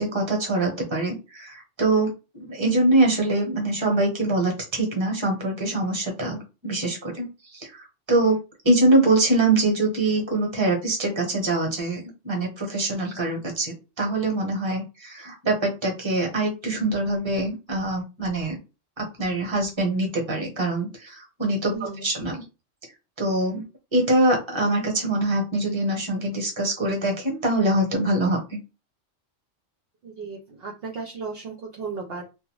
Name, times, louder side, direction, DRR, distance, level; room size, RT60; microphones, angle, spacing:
voice 1, 0.0-8.4 8.6-18.6 19.0-21.7 22.0-22.4 23.2-23.6 23.9-28.6, right 2 dB, 25° right, 1 dB, 0.9 m, -24 dB
voice 2, 21.7-22.1 30.0-32.3, right 4 dB, 60° right, 0 dB, 0.7 m, -35 dB
2.4 x 2.3 x 3.1 m, 0.28 s
omnidirectional pair, 1.3 m